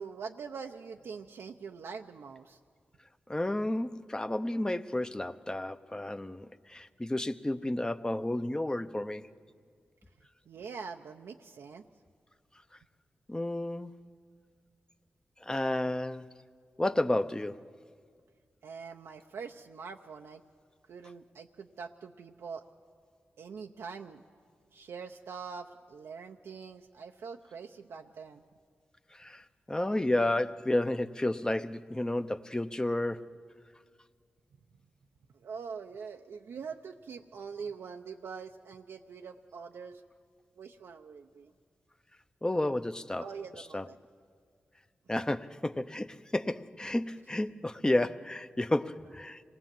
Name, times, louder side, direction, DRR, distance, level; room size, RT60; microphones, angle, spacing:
voice 1, 0.0-2.6 10.5-11.8 18.6-20.4 20.9-22.6 23.4-24.2 24.7-28.4 35.3-40.0 40.6-41.5 43.2-44.0, right 5 dB, 90° right, 0.7 m, -44 dB
voice 2, 3.3-9.3 13.3-13.9 15.4-16.3 16.8-17.6 29.2-29.4 29.7-33.3 42.4-43.2 43.7-43.9 45.1-49.4, left 1 dB, 20° left, 0.7 m, -31 dB
26.0 x 19.0 x 7.6 m
cardioid pair, 60°, 4 cm